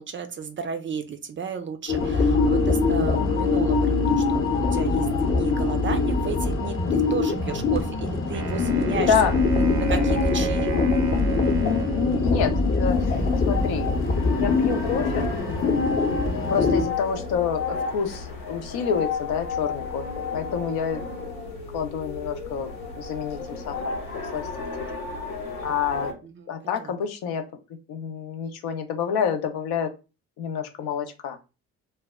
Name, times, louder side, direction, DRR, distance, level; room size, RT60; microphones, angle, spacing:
voice 1, 0.0-4.4 4.7-9.2 9.5-10.7 26.2-27.0, right 6 dB, 30° right, 8 dB, 0.4 m, -34 dB
sound 1, 1.9-16.8, left 3 dB, 35° left, 0.7 m, -23 dB
Wind instrument woodwind instrument, 8.3-12.6, right 4 dB, 80° right, 0.6 m, -37 dB
voice 2, 9.0-9.3 11.6-13.9 14.4-15.3 16.5-20.1 20.3-21.0 21.7-24.0 24.3-24.5 25.6-26.2 26.5-27.5 27.9-29.9 30.4-31.4, left 7 dB, 70° left, 7 dB, 0.6 m, -28 dB
sound 2, 12.8-26.1, left 4 dB, 90° left, 0.9 m, -32 dB
2.1 x 2.0 x 3.4 m, 0.30 s
hypercardioid pair, 55°, 39 cm